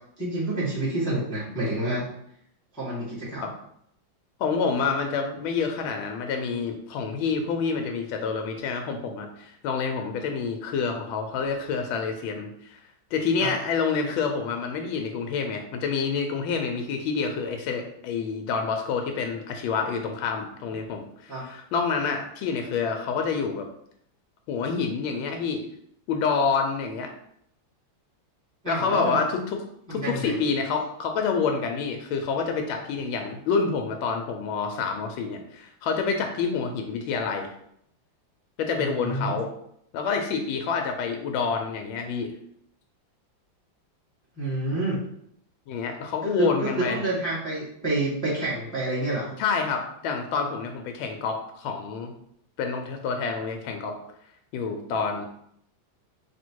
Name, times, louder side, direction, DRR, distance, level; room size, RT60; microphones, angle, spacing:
voice 1, 0.2-2.0 2.7-3.4 13.4-13.5 21.3-21.4 28.6-29.2 29.9-30.4 38.8-39.3 44.4-45.0 46.2-49.3, right 1 dB, 5° left, -9 dB, 1.2 m, -28 dB
voice 2, 4.4-12.8 13.1-23.7 24.5-25.6 26.1-27.1 28.7-29.6 29.9-37.5 38.6-39.5 39.9-42.3 45.7-47.0 49.4-52.1 52.6-54.0 54.5-55.3, left 5 dB, 90° left, 4 dB, 1.4 m, -28 dB
3.4 x 2.7 x 4.4 m, 0.71 s
omnidirectional pair, 2.1 m